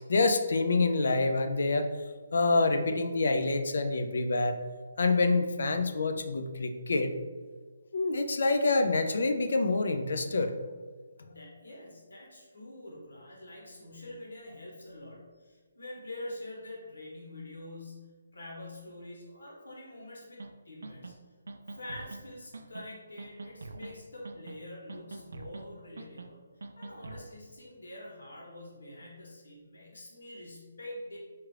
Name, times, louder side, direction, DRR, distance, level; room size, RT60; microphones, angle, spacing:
voice 1, 0.1-1.9 2.3-4.6 5.0-7.1 7.9-10.5, left 3 dB, 55° left, 7 dB, 0.3 m, -27 dB
voice 2, 11.2-21.1 21.7-26.4 26.8-31.2, left 1 dB, 80° left, -3 dB, 1.1 m, -45 dB
sound 1, 20.4-20.5 20.8-21.1 21.5-22.2 22.5-22.9 23.2-23.9 24.2-24.6 24.9-25.6 26.0-26.3 26.6-27.3, right 3 dB, 70° right, 0.3 m, -44 dB
4.3 x 2.4 x 3.2 m, 1.5 s
hypercardioid pair, 180°, 0 cm